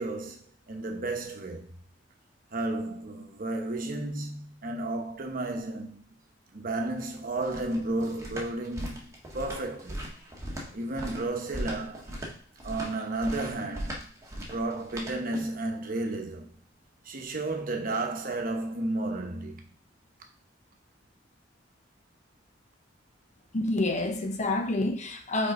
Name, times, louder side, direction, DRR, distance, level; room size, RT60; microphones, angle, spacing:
voice 1, 0.0-1.8 2.5-6.1 6.5-10.0 10.7-12.2 12.6-14.0 14.4-16.6 17.0-19.7, right 2 dB, 50° right, 1.0 m, -33 dB
sound 1, 7.0-15.7, equal, 15° right, 1.3 m, -39 dB
voice 2, 23.5-25.5, left 2 dB, 40° left, 0.8 m, -28 dB
5.6 x 4.5 x 3.8 m
head